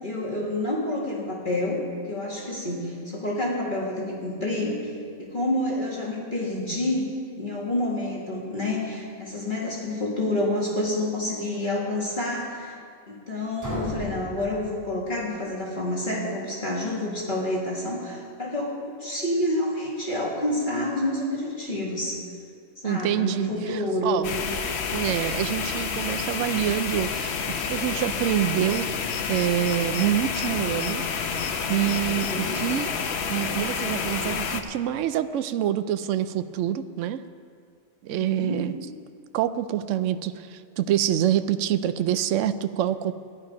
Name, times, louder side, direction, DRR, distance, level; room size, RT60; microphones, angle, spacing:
voice 1, 0.0-1.8 2.1-4.8 5.2-7.1 7.4-12.7 13.1-22.2 22.8-24.3 32.0-32.6 38.1-38.6, left 1 dB, 35° left, -4 dB, 2.1 m, -28 dB
sound 1, 13.6-15.5, left 1 dB, 10° right, 3.8 m, -35 dB
voice 2, 22.8-24.3 24.9-27.4 27.7-28.9 29.3-31.0 31.7-32.9 33.3-37.2 38.0-38.8 39.3-43.1, right 11 dB, 70° right, 11 dB, 0.9 m, -26 dB
sound 2, 24.2-34.6, left 6 dB, 55° left, 1.0 m, -29 dB
14.0 x 11.0 x 5.3 m, 2.2 s
omnidirectional pair, 1.4 m